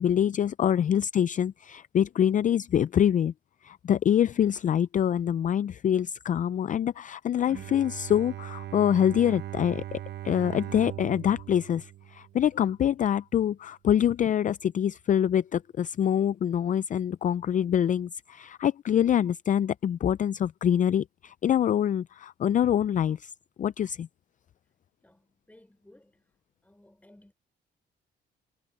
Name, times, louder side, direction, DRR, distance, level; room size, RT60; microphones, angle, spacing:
voice 1, 0.0-3.3 3.6-23.3 23.6-24.1, left 9 dB, 40° left, 0.4 m, -25 dB
Bowed string instrument, 7.5-12.7, right 13 dB, 60° right, 0.8 m, -40 dB
voice 2, 25.0-26.3 26.6-27.3, left 1 dB, 5° left, 4.6 m, -58 dB
cardioid pair, 90°, 20 cm